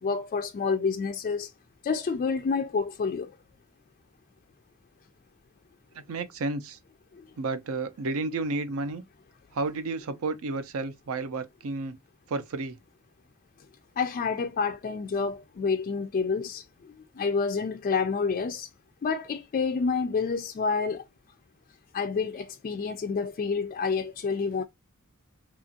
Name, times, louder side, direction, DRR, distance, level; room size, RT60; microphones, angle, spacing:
voice 1, 0.0-1.5 1.8-3.3 7.1-7.2 14.0-18.7 19.0-21.0 21.9-24.6, left 5 dB, 40° left, 0.3 m, -28 dB
voice 2, 5.9-6.8 7.4-9.0 9.5-12.0 12.3-12.8, right 3 dB, 65° right, 0.5 m, -31 dB
2.9 x 2.4 x 2.6 m
head